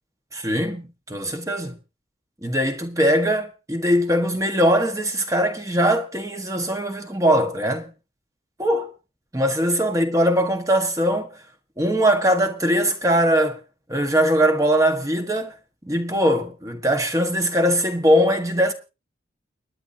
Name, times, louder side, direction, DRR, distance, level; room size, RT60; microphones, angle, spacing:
voice 1, 0.3-1.8 2.4-7.9 8.6-8.9 9.3-11.4 11.8-13.6 13.9-15.6 15.8-18.7, equal, 15° right, 1.4 m, -21 dB
29.0 x 9.8 x 2.8 m
head